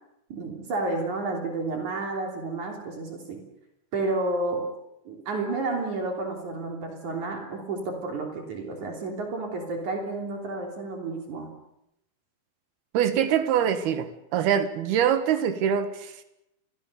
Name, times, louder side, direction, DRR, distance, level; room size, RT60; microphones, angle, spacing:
voice 1, 0.3-3.4 3.9-4.7 5.1-11.6, right 2 dB, 55° right, 4.5 m, -31 dB
voice 2, 12.9-16.2, right 9 dB, 90° right, 3.7 m, -24 dB
30.0 x 24.0 x 6.8 m
omnidirectional pair, 4.3 m